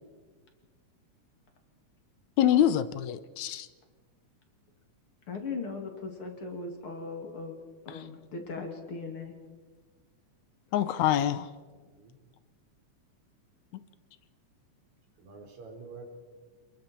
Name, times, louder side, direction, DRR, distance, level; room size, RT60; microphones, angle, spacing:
voice 1, 2.4-3.7 7.9-8.0 10.7-11.5, left 10 dB, 80° left, 13 dB, 2.1 m, -25 dB
voice 2, 5.3-7.6 7.8-9.4, left 4 dB, 50° left, 3 dB, 3.2 m, -38 dB
voice 3, 11.7-12.2 15.2-16.0, right 4 dB, 75° right, 2 dB, 4.5 m, -48 dB
28.5 x 21.0 x 4.4 m, 1.4 s
omnidirectional pair, 3.3 m